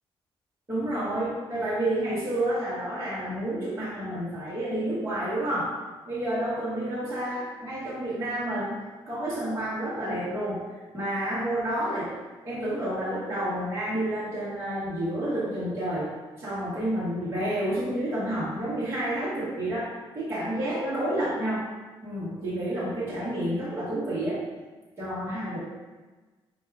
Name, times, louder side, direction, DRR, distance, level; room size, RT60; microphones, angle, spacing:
voice 1, 0.7-5.7 6.0-8.8 9.1-12.1 12.4-16.1 16.4-21.6 22.0-24.4 25.0-25.6, right 1 dB, 25° right, -12 dB, 1.3 m, -29 dB
4.4 x 2.7 x 3.6 m, 1.3 s
cardioid pair, 135°, 9 cm